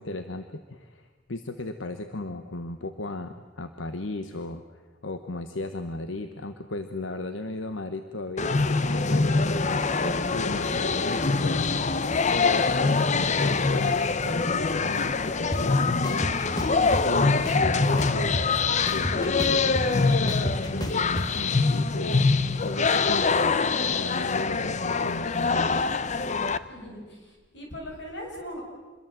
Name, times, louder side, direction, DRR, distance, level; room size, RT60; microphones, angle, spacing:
voice 1, 0.0-11.8 12.3-16.4 16.8-18.5 18.9-25.8, left 2 dB, 90° left, 9 dB, 1.2 m, -35 dB
sound 1, 8.4-26.6, left 4 dB, 40° left, 0.8 m, -24 dB
sound 2, 15.5-15.6 16.0-17.0 17.5-18.6 18.9-21.3, equal, 20° left, 1.7 m, -31 dB
voice 2, 26.6-28.6, equal, 65° left, 1 dB, 7.2 m, -40 dB
27.0 x 22.0 x 7.7 m, 1.3 s
head